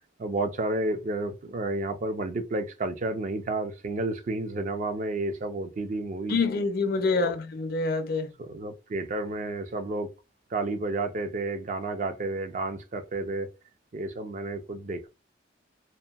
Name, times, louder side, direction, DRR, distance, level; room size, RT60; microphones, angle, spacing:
voice 1, 0.2-6.4 7.1-7.3 8.4-10.1 10.5-13.5 13.9-15.1, right 2 dB, 40° right, 0.4 m, -31 dB
voice 2, 6.3-8.3, left 4 dB, 55° left, 0.5 m, -26 dB
2.8 x 2.5 x 2.3 m
head